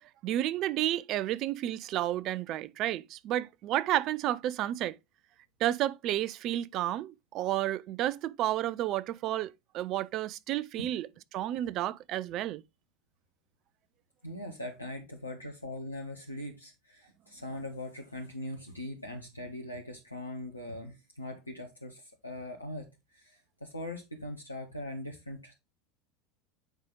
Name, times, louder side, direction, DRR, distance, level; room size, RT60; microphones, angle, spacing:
voice 1, 0.2-5.0 5.6-11.1 11.3-12.6, right 13 dB, 45° right, 0.5 m, -31 dB
voice 2, 14.2-25.5, left 1 dB, 90° left, 1.0 m, -41 dB
8.0 x 5.0 x 3.8 m
figure-of-eight pair, 75°, 0 cm